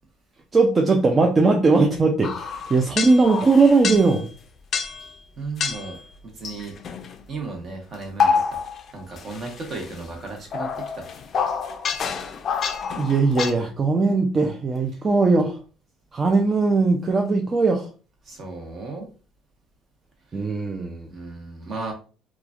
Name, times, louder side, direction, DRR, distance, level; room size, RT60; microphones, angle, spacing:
voice 1, 0.5-4.3 13.0-15.6 16.1-17.9 20.3-21.1, right 3 dB, 25° right, 0.4 m, -19 dB
sound 1, 2.2-4.2 4.7-5.1 5.6-6.0 6.4-7.2 7.9-8.9 9.2-13.5, left 6 dB, 45° left, 0.4 m, -27 dB
voice 2, 5.4-6.0 6.4-6.7 7.3-8.6 8.9-10.7 10.9-11.1 14.9-15.0 18.2-19.1 20.3-20.4 21.1-21.9, right 3 dB, 45° right, 1.0 m, -35 dB
3.0 x 2.3 x 2.4 m
cardioid pair, 120°, 0 cm